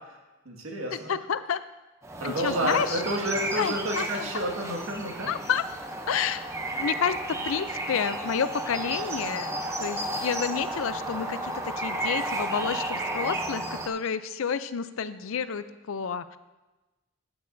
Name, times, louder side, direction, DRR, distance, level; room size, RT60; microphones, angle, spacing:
voice 1, 0.5-1.1 2.2-5.3, right 1 dB, 85° right, 0 dB, 1.8 m, -30 dB
voice 2, 1.1-1.6 2.2-3.0 3.6-4.3 5.3-5.6 6.1-6.4 6.7-9.5 9.8-16.4, left 7 dB, 75° left, 13 dB, 0.5 m, -30 dB
sound 1, 2.0-13.9, right 1 dB, 15° right, 0.6 m, -33 dB
15.5 x 8.7 x 2.7 m, 1.1 s
head